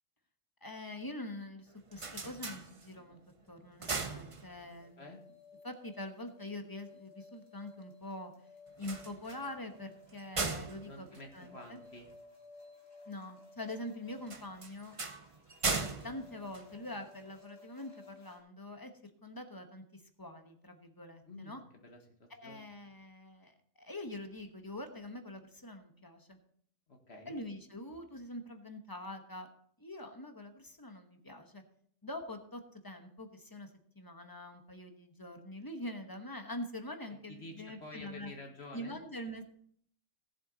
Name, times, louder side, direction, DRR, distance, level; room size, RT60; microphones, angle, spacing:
voice 1, 0.6-3.2 3.5-5.2 5.6-8.3 8.8-11.1 11.3-11.8 13.1-15.0 16.0-18.9 19.2-21.6 22.4-26.4 27.3-29.5 29.8-31.6 32.0-33.7 33.9-38.3 38.7-39.4, left 1 dB, 20° left, 6 dB, 1.0 m, -44 dB
sound 1, 1.7-3.2 3.6-4.9 8.7-12.1 14.2-17.3, right 4 dB, 30° right, 0.8 m, -39 dB
sound 2, 4.8-18.4, left 3 dB, 75° left, 3.3 m, -57 dB
voice 2, 10.8-12.1 21.2-22.7 26.9-27.4 37.1-39.0, left 2 dB, 55° left, 3 dB, 1.8 m, -50 dB
17.0 x 7.4 x 4.0 m, 0.64 s
omnidirectional pair, 1.3 m